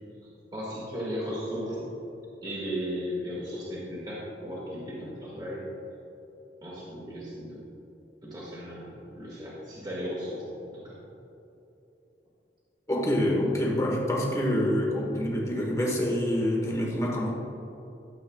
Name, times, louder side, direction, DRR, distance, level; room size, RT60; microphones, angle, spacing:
voice 1, 0.5-1.8 2.4-5.7 6.6-7.6 8.2-11.0, equal, 25° right, -7 dB, 1.9 m, -36 dB
voice 2, 12.9-17.3, left 1 dB, 15° left, -2 dB, 1.3 m, -26 dB
13.0 x 8.0 x 2.3 m, 2.9 s
head